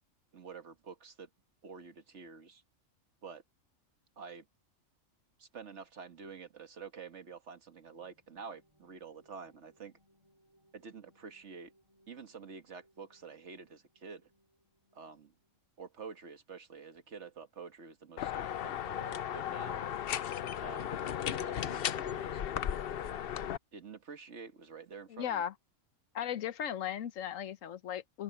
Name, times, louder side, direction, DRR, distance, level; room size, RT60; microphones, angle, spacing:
voice 1, 0.3-1.3 1.6-2.6 3.2-3.4 4.2-4.5 5.4-9.9 10.7-11.7 12.1-14.3 14.9-15.3 15.8-19.9 20.6-22.4 23.7-25.4, right 5 dB, 60° right, 1.9 m, -48 dB
sound 1, 7.9-15.7, equal, 20° right, 4.2 m, -71 dB
sound 2, 18.2-23.6, left 10 dB, 55° left, 0.7 m, -36 dB
voice 2, 25.1-25.5 26.1-28.2, left 9 dB, 80° left, 1.2 m, -36 dB
open air
omnidirectional pair, 1.3 m